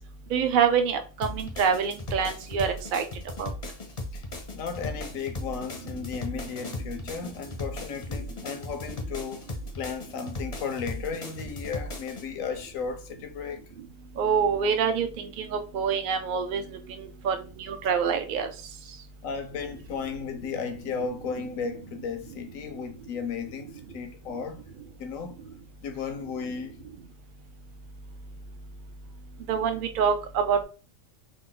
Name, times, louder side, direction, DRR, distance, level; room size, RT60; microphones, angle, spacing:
voice 1, 0.3-3.0 3.4-3.5 14.2-16.6 17.0-17.4 17.7-18.5 29.5-30.6, right 6 dB, 50° right, 0.6 m, -26 dB
sound 1, 1.2-12.2, left 1 dB, 40° left, 0.6 m, -37 dB
voice 2, 4.5-9.5 9.8-13.6 19.2-24.6 25.0-25.4 25.8-26.8, left 6 dB, 85° left, 1.1 m, -35 dB
3.7 x 2.1 x 3.8 m
omnidirectional pair, 1.4 m